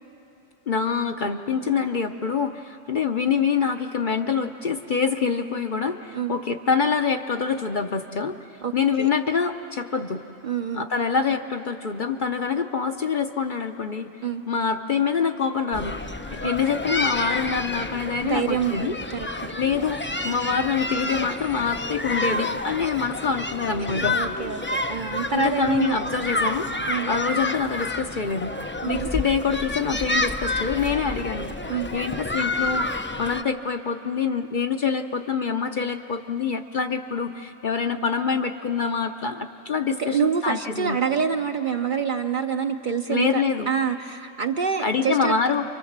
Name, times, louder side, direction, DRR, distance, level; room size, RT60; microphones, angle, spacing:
voice 1, 0.7-8.4 8.7-10.2 10.7-14.1 14.5-16.0 16.3-19.0 19.6-24.4 25.3-26.7 27.1-28.5 28.9-31.5 31.9-41.0 43.1-43.7 44.8-45.6, left 6 dB, 45° left, 6 dB, 0.8 m, -25 dB
voice 2, 8.6-9.1 10.4-10.9 14.2-14.4 16.4-16.7 18.2-19.6 23.8-26.0 26.9-27.1 28.8-29.1 31.7-31.9 40.0-45.3, right 6 dB, 50° right, 6 dB, 0.7 m, -27 dB
sound 1, 15.7-33.4, left 2 dB, 20° left, 0.3 m, -29 dB
28.5 x 24.5 x 7.3 m, 2.9 s
omnidirectional pair, 1.3 m